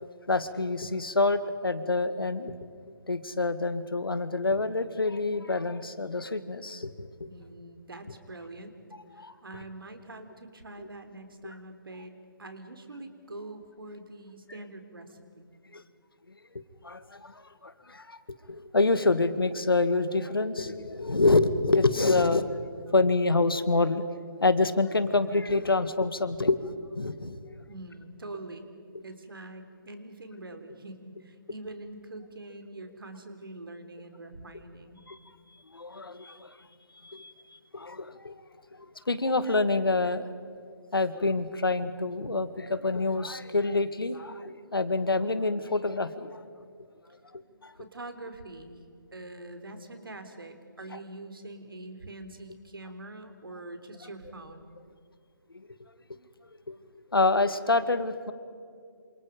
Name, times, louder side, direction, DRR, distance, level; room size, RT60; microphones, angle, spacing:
voice 1, 0.0-2.5 3.1-7.1 9.2-9.3 10.8-10.9 11.4-11.5 15.7-15.8 16.8-18.2 18.5-24.1 24.4-27.4 35.1-35.2 35.7-36.6 37.0-37.3 37.7-38.3 38.7-40.3 40.9-46.4 47.6-47.7 50.9-51.0 55.5-55.7 56.7-56.8 57.1-58.3, left 3 dB, 85° left, 12 dB, 1.8 m, -27 dB
voice 2, 7.3-8.8 9.1-12.1 12.4-15.5 27.7-28.7 29.0-35.0 47.5-48.8 49.1-54.6, right 2 dB, 75° right, 7 dB, 3.5 m, -44 dB
28.0 x 27.0 x 5.2 m, 2.3 s
figure-of-eight pair, 150°, 12 cm